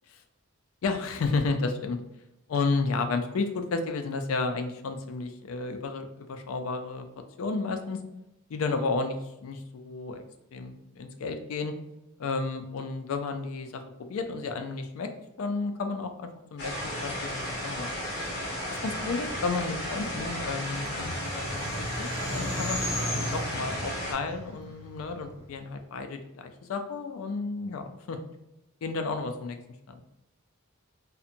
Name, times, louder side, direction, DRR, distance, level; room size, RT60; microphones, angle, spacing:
voice 1, 0.8-2.0 2.5-7.1 7.4-8.0 8.5-10.2 10.5-11.7 12.2-15.1 15.4-18.2 18.7-28.2 28.8-29.6 29.9-30.0, left 3 dB, 85° left, 6 dB, 0.4 m, -32 dB
sound 1, 16.6-24.1, equal, 55° left, 0.9 m, -34 dB
sound 2, 20.1-25.4, equal, 15° left, 0.9 m, -36 dB
2.7 x 2.1 x 2.5 m, 0.92 s
head